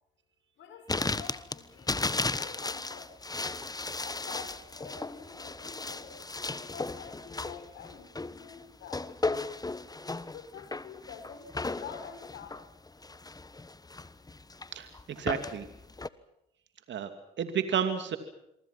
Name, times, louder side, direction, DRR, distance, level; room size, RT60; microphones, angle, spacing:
voice 1, 0.6-2.0 2.3-3.1 4.0-6.2 6.5-9.4 10.3-12.6, left 7 dB, 75° left, 7 dB, 6.3 m, -47 dB
sound 1, 0.9-16.1, left 3 dB, 20° left, 1.3 m, -36 dB
voice 2, 14.7-15.7 16.9-17.1 17.4-18.2, right 8 dB, 65° right, 8 dB, 2.7 m, -31 dB
27.0 x 24.0 x 6.0 m, 0.82 s
supercardioid pair, 55°, 20 cm